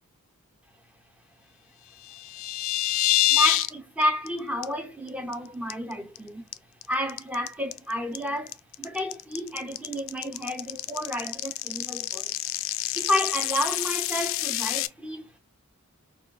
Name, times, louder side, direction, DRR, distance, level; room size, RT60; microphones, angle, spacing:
sound 1, 2.0-3.7 4.0-4.3 4.6-4.7 5.1-5.3 5.7-6.2 6.5-14.9, left 15 dB, 65° left, 0.3 m, -27 dB
voice 1, 3.3-6.5 6.9-12.3 12.9-15.4, equal, 5° right, 0.7 m, -31 dB
4.5 x 2.4 x 2.3 m
head